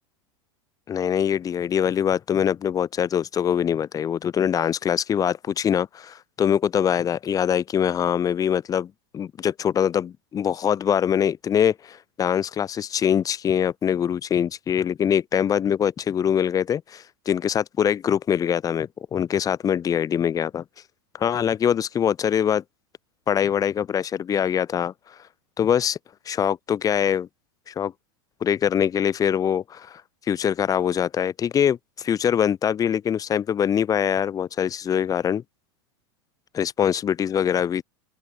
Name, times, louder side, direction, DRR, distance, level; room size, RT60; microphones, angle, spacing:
voice 1, 0.9-20.6 21.2-22.6 23.3-24.9 25.6-26.0 26.3-27.3 27.7-27.9 28.4-30.0 30.3-35.4 36.5-37.8, left 8 dB, 25° left, 3.1 m, -23 dB
open air
supercardioid pair, 125°, 14 cm